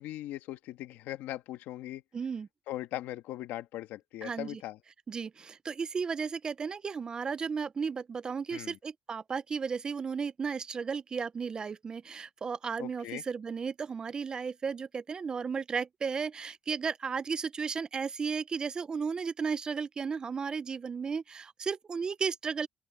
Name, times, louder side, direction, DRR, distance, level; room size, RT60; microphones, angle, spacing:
voice 1, 0.0-2.0 2.7-4.8 8.5-8.8 12.8-13.2, left 14 dB, 80° left, 1.4 m, -39 dB
voice 2, 2.1-2.5 4.2-4.6 5.1-22.7, right 5 dB, 25° right, 0.4 m, -34 dB
open air
cardioid pair, 155°, 3 cm